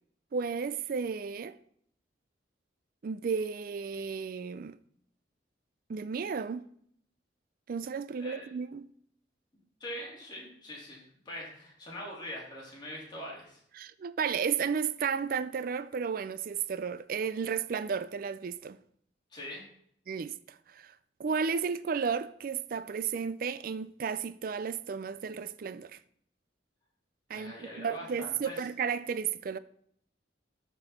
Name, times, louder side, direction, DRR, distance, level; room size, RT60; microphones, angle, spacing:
voice 1, 0.3-1.6 3.0-4.8 5.9-6.7 7.7-8.9 13.8-18.8 20.1-20.9 21.2-26.0 27.3-29.6, right 6 dB, 50° right, 0.3 m, -33 dB
voice 2, 9.8-13.6 19.3-19.6 27.3-28.6, equal, 25° left, 2.6 m, -43 dB
13.0 x 4.5 x 4.2 m
head